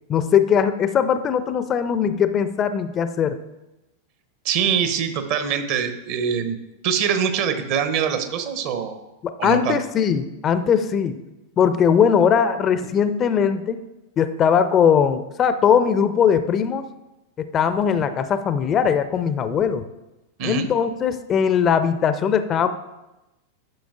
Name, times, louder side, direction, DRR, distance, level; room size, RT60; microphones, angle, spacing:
voice 1, 0.1-3.4 9.2-11.2 11.6-13.8 14.2-16.9 17.4-19.8 20.4-22.7, left 7 dB, 30° left, 12 dB, 0.4 m, -20 dB
voice 2, 4.4-6.6 6.8-9.0 9.4-9.8 20.4-20.7, right 7 dB, 45° right, 8 dB, 0.8 m, -23 dB
11.5 x 6.1 x 2.4 m, 0.98 s
figure-of-eight pair, 90°, 0 cm